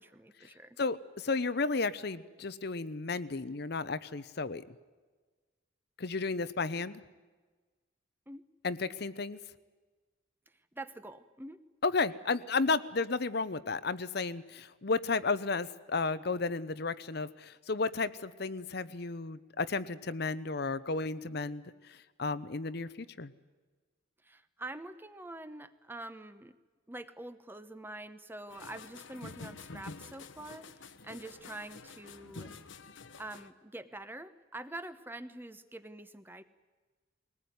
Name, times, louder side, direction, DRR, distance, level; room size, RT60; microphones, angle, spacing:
voice 1, 0.0-0.8 8.3-8.4 10.7-11.6 24.2-26.5 26.9-30.7 31.0-32.5 33.2-36.4, right 2 dB, 10° right, 12 dB, 0.9 m, -45 dB
voice 2, 0.8-4.6 6.0-7.0 8.6-9.4 11.8-21.6 21.9-23.3, left 4 dB, 55° left, 14 dB, 0.8 m, -33 dB
sound 1, 28.5-33.5, left 3 dB, 75° left, 1.1 m, -48 dB
21.5 x 19.5 x 9.5 m, 1.3 s
head